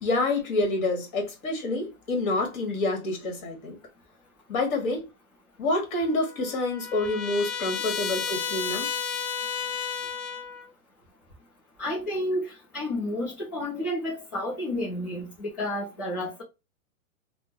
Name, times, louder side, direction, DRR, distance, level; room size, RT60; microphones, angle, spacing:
voice 1, 0.0-3.7 4.5-5.0 5.6-8.9, left 2 dB, 35° left, 1.4 m, -27 dB
Trumpet, 6.0-10.7, left 7 dB, 85° left, 0.7 m, -32 dB
voice 2, 11.8-12.5 12.7-16.4, left 1 dB, 15° left, 0.3 m, -30 dB
3.5 x 2.0 x 2.9 m
hypercardioid pair, 150°, 43 cm